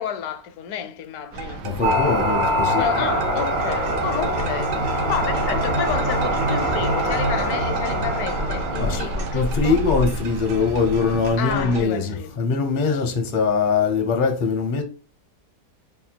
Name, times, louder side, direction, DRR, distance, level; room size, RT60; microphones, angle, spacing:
voice 1, 0.0-1.6 2.8-9.8 11.4-12.5 12.9-13.0, left 8 dB, 75° left, 1.0 m, -30 dB
sound 1, 1.3-11.8, right 1 dB, 90° right, 1.2 m, -31 dB
voice 2, 1.6-3.1 8.7-14.8, left 5 dB, 50° left, 0.6 m, -22 dB
sound 2, 1.8-9.8, right 1 dB, 65° right, 0.5 m, -24 dB
3.6 x 2.2 x 4.3 m
omnidirectional pair, 1.7 m